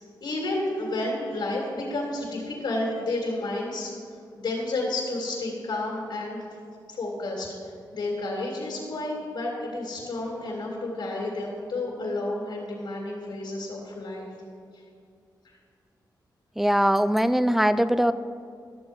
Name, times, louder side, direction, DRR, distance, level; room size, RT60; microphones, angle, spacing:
voice 1, 0.2-3.9 4.4-6.4 6.9-7.5 7.9-14.3, left 2 dB, 80° left, -4 dB, 2.6 m, -31 dB
voice 2, 16.6-18.1, equal, 5° right, 13 dB, 0.4 m, -21 dB
13.0 x 7.0 x 5.3 m, 2.3 s
wide cardioid pair, 100°, 8 cm